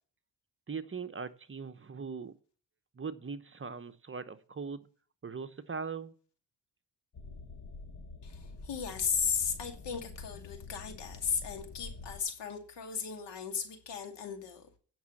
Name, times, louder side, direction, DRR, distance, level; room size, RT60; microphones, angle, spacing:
voice 1, 0.7-2.3 2.9-4.9 5.2-6.1, right 5 dB, 30° right, 11 dB, 0.9 m, -40 dB
sound 1, 7.1-12.2, left 3 dB, 45° left, 1.5 m, -47 dB
voice 2, 8.2-14.7, left 6 dB, 85° left, 4 dB, 2.4 m, -35 dB
9.2 x 6.2 x 7.0 m, 0.41 s
cardioid pair, 90°, 41 cm